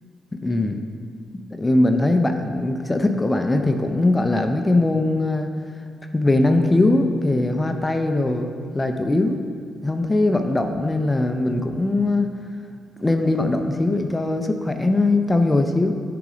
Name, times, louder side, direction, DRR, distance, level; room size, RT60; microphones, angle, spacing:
voice 1, 0.3-0.8 1.5-5.5 6.1-9.4 9.8-12.3 13.0-15.9, left 2 dB, 20° left, 5 dB, 0.5 m, -21 dB
8.0 x 3.9 x 5.0 m, 2.1 s
cardioid pair, 70°, 0 cm